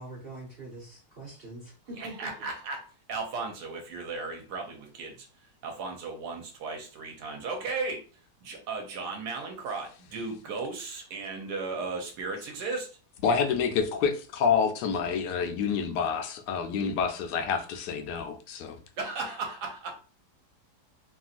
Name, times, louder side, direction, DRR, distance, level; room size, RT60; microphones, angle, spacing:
voice 1, 0.0-2.1, right 2 dB, 50° right, 0.7 m, -43 dB
voice 2, 2.0-5.3 5.6-8.0 8.4-12.9 19.0-19.9, right 3 dB, 75° right, 1.2 m, -35 dB
voice 3, 13.2-18.8, left 6 dB, 75° left, 1.1 m, -28 dB
2.9 x 2.6 x 2.4 m
omnidirectional pair, 1.8 m